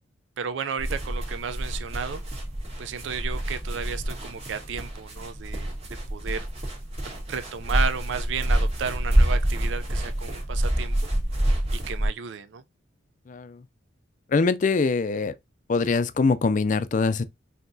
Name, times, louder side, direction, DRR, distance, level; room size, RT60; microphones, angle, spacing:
voice 1, 0.4-2.2 2.8-5.7 6.1-6.5 7.3-11.0 11.7-12.6, right 6 dB, 75° right, 0.4 m, -33 dB
sound 1, 0.8-12.1, right 1 dB, 35° right, 1.5 m, -27 dB
voice 2, 13.3-13.6 14.3-15.3 15.7-17.2, left 4 dB, 40° left, 0.4 m, -23 dB
5.8 x 2.8 x 2.6 m
head